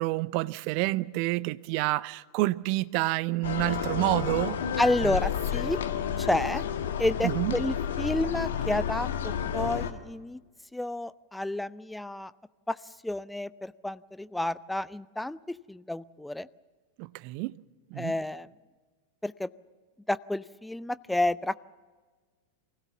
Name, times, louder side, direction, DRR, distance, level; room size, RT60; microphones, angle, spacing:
voice 1, 0.0-4.6 5.0-5.2 7.2-7.6 17.0-17.6 17.9-18.1, right 20 dB, 45° right, 0.6 m, -28 dB
sound 1, 3.4-9.9, left 8 dB, 60° left, 1.4 m, -31 dB
voice 2, 4.8-5.8 6.2-6.6 7.0-10.4 10.7-12.3 12.7-12.8 13.0-16.5 18.0-18.5 19.2-19.5 20.1-21.6, left 1 dB, 5° left, 0.5 m, -30 dB
24.0 x 16.5 x 7.0 m
figure-of-eight pair, 90°, 0 cm